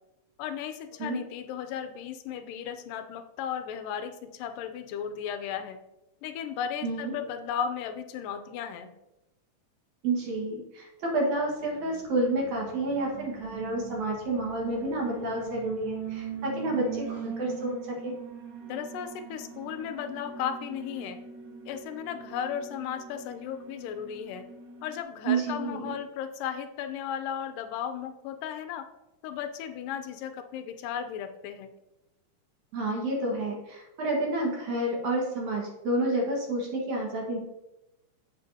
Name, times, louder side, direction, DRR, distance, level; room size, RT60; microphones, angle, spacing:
voice 1, 0.4-5.8 6.2-8.9 18.6-21.2 21.7-24.4 24.8-28.9 29.2-31.7, left 8 dB, 80° left, 9 dB, 2.3 m, -35 dB
voice 2, 6.8-7.1 10.0-17.8 18.0-18.1 25.3-25.9 32.7-37.4, right 2 dB, 60° right, -1 dB, 2.8 m, -29 dB
Alarm, 11.5-25.0, right 7 dB, 85° right, 1.1 m, -42 dB
9.0 x 7.7 x 2.8 m, 0.92 s
omnidirectional pair, 4.0 m